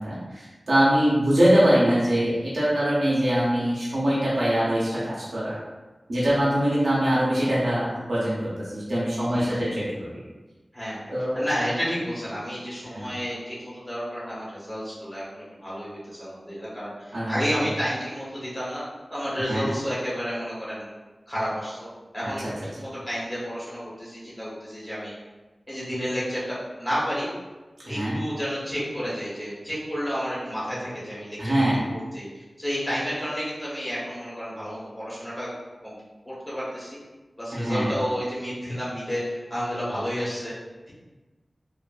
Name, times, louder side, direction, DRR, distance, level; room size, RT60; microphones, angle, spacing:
voice 1, 0.0-5.5 6.1-10.1 11.1-11.4 12.9-13.1 17.1-17.3 19.5-19.7 27.9-28.2 31.4-31.8 37.5-37.9, equal, 85° right, -8 dB, 0.7 m, -23 dB
voice 2, 9.2-9.5 10.7-11.0 11.3-18.8 19.1-20.9 21.3-21.9 22.1-25.1 25.7-27.3 27.8-31.5 31.9-35.5 35.8-35.9 36.2-37.0 37.4-40.5, equal, 20° left, -9 dB, 1.1 m, -31 dB
2.5 x 2.4 x 2.4 m, 1.2 s
wide cardioid pair, 80°, 0 cm